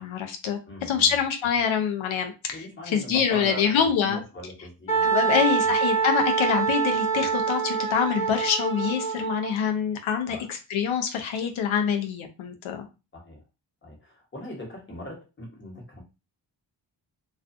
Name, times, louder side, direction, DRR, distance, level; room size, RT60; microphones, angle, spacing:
voice 1, 0.0-0.6 0.9-4.2 5.0-12.8, left 7 dB, 85° left, 5 dB, 0.6 m, -25 dB
voice 2, 0.7-1.1 2.5-5.7 10.3-10.5 13.1-13.4 13.8-16.0, left 1 dB, 25° left, -1 dB, 1.1 m, -40 dB
Wind instrument woodwind instrument, 4.9-9.5, right 6 dB, 40° left, 0.8 m, -25 dB
2.4 x 2.3 x 2.5 m, 0.28 s
cardioid pair, 80°, 46 cm